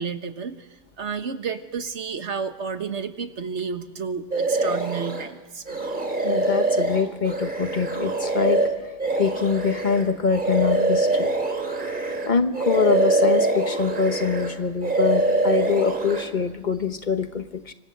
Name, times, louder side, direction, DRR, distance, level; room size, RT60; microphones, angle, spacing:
voice 1, 0.0-5.6, right 5 dB, 80° right, 8 dB, 1.6 m, -31 dB
sound 1, 4.3-5.3 5.7-12.3 12.5-14.5 14.8-16.2, right 2 dB, 45° right, 3.0 m, -24 dB
voice 2, 6.2-8.6 9.2-11.3 12.3-17.7, left 6 dB, 45° left, 9 dB, 1.1 m, -24 dB
26.5 x 24.5 x 6.7 m, 1.1 s
omnidirectional pair, 1.2 m